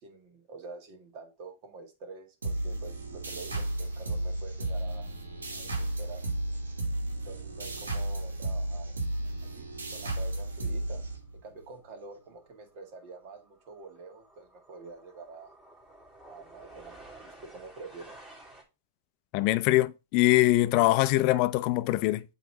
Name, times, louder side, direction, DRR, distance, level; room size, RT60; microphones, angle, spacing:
voice 1, 0.0-5.1 5.5-6.3 7.1-8.9 9.4-11.0 11.4-15.5 16.2-18.2, right 4 dB, 50° right, 1.8 m, -47 dB
sound 1, 2.4-11.6, right 1 dB, 85° right, 1.6 m, -33 dB
sound 2, 11.8-12.0 12.3-18.6, right 2 dB, 15° right, 2.9 m, -53 dB
voice 2, 19.3-22.2, left 18 dB, 45° left, 0.5 m, -23 dB
7.9 x 3.2 x 4.7 m
hypercardioid pair, 110°, 0 cm